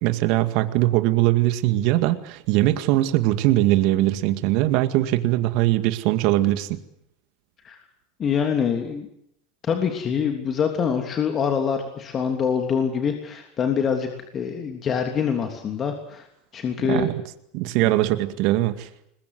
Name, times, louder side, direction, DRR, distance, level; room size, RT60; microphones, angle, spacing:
voice 1, 0.0-6.8 16.9-17.2 17.5-18.9, right 16 dB, 60° right, 10 dB, 2.0 m, -21 dB
voice 2, 8.2-9.1 9.6-16.3 16.5-17.1 17.8-17.9, left 7 dB, 35° left, 4 dB, 3.1 m, -25 dB
21.5 x 21.0 x 8.1 m, 0.75 s
supercardioid pair, 110°, 0 cm